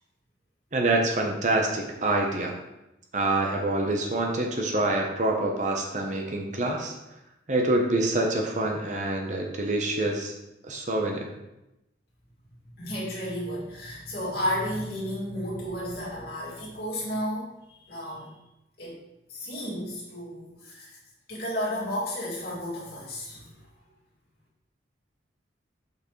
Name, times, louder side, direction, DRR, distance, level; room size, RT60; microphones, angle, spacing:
voice 1, 0.7-2.6 3.1-6.9 7.5-10.3 10.6-11.3, right 2 dB, 40° right, 1 dB, 0.8 m, -26 dB
voice 2, 12.8-18.3 18.8-19.0 19.3-21.0 21.3-23.5, equal, 55° left, -6 dB, 2.3 m, -33 dB
6.5 x 5.7 x 3.1 m, 0.92 s
head